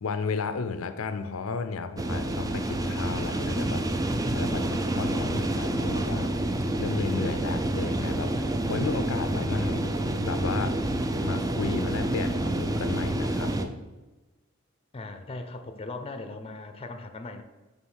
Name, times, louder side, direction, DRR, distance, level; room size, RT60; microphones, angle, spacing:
voice 1, 0.0-6.3 6.8-10.7 11.2-13.8, left 4 dB, 85° left, 9 dB, 0.5 m, -33 dB
sound 1, 2.0-13.7, right 1 dB, 15° right, 0.4 m, -28 dB
voice 2, 14.9-17.4, left 2 dB, 30° left, 8 dB, 0.6 m, -39 dB
7.2 x 3.6 x 6.4 m, 1.2 s
head